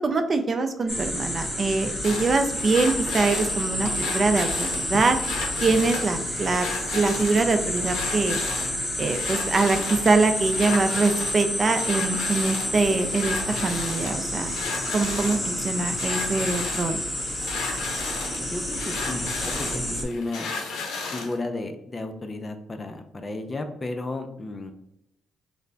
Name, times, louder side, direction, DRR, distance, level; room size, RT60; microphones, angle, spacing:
voice 1, 0.0-5.2 5.6-6.7 6.9-8.4 9.0-13.4 13.6-14.5 14.9-17.0, right 3 dB, 40° right, 7 dB, 0.4 m, -23 dB
sound 1, 0.9-20.0, equal, 10° left, 0.8 m, -29 dB
sound 2, 2.0-21.4, left 4 dB, 80° left, 0.6 m, -34 dB
voice 2, 18.5-20.5 21.1-24.7, left 2 dB, 30° left, 7 dB, 0.4 m, -33 dB
3.3 x 2.1 x 3.8 m, 0.82 s
cardioid pair, 90°, 0 cm